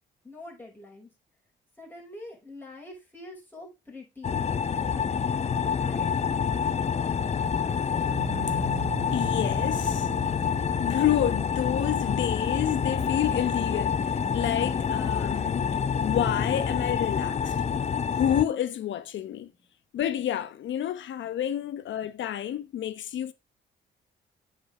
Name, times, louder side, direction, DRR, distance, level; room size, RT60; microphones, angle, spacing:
voice 1, 0.2-1.1 1.8-4.4 5.7-6.1, left 2 dB, 10° left, 6.2 m, -44 dB
sound 1, 4.2-18.4, left 6 dB, 35° left, 0.6 m, -27 dB
sound 2, 8.1-13.0, right 10 dB, 65° right, 1.0 m, -41 dB
voice 2, 9.1-10.1 10.8-15.6 16.0-17.6 18.1-19.5 19.9-23.3, left 11 dB, 70° left, 1.1 m, -29 dB
8.4 x 5.5 x 4.9 m
cardioid pair, 90°, 20 cm